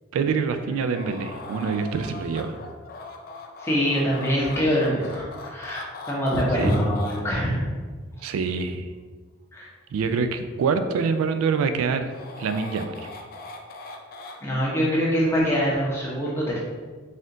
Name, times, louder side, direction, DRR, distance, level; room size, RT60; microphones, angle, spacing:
voice 1, 0.1-2.5 6.6-6.7 8.2-8.9 9.9-12.1 12.4-13.1, right 5 dB, 90° right, 10 dB, 0.3 m, -25 dB
sound 1, 0.6-7.2 11.8-14.4, left 3 dB, 45° left, 0.4 m, -40 dB
voice 2, 3.6-7.6 9.5-9.7 14.4-16.6, equal, 15° left, -6 dB, 0.8 m, -24 dB
4.2 x 2.4 x 3.7 m, 1.5 s
head